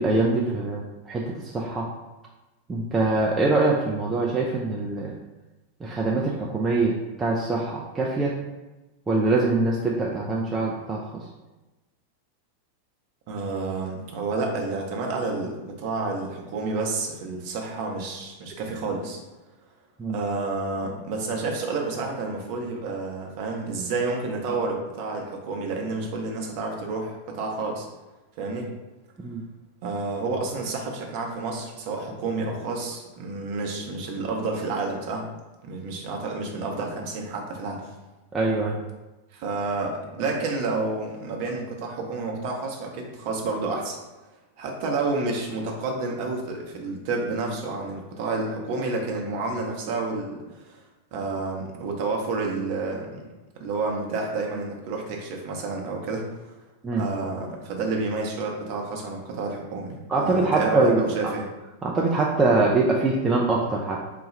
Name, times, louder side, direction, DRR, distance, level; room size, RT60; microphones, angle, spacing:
voice 1, 0.0-1.9 2.7-5.2 5.8-8.3 9.1-11.2 20.0-20.2 29.2-29.4 38.3-38.7 56.8-57.1 60.1-61.3 61.8-64.0, right 3 dB, 15° right, -3 dB, 0.4 m, -23 dB
voice 2, 13.3-19.2 20.1-27.9 28.4-28.7 29.8-35.3 35.6-37.9 39.3-44.0 44.6-50.8 51.1-53.2 53.6-56.3 57.0-61.5, right 3 dB, 45° right, 1 dB, 0.7 m, -30 dB
4.0 x 2.2 x 3.2 m, 1.1 s
figure-of-eight pair, 90°, 0 cm